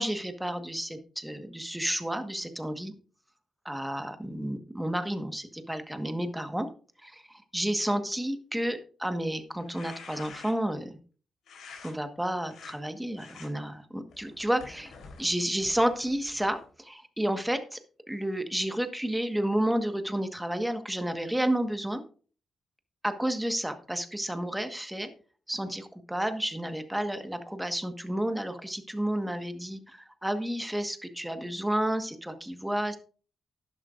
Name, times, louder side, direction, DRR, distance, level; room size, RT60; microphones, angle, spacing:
voice 1, 0.0-2.9 3.6-6.7 7.0-10.9 11.8-14.9 15.2-17.8 18.1-22.0 23.0-25.1 25.5-33.0, right 1 dB, 5° right, 8 dB, 1.4 m, -31 dB
sound 1, 9.5-10.8 11.5-11.9 12.4-12.7 13.2-13.5 14.1-16.7, left 5 dB, 85° left, 3.6 m, -48 dB
12.0 x 11.0 x 2.5 m, 0.40 s
cardioid pair, 95°, 0 cm